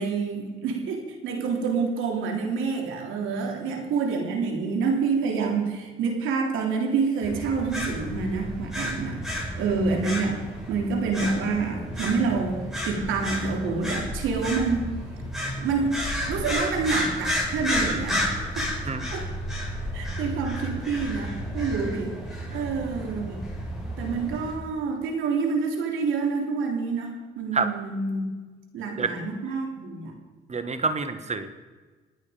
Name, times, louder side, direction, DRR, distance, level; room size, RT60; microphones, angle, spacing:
voice 1, 0.0-9.2 9.6-10.4 10.7-14.8 15.6-16.0 16.3-18.7 19.1-19.2 19.9-22.1 22.5-23.4 24.0-28.3 28.7-30.1, right 4 dB, 85° right, 2 dB, 3.4 m, -27 dB
sound 1, 7.2-24.5, equal, ahead, 6.7 m, -32 dB
voice 2, 30.5-31.5, right 4 dB, 35° right, 9 dB, 1.7 m, -27 dB
27.5 x 9.4 x 5.2 m, 1.3 s
cardioid pair, 90°, 20 cm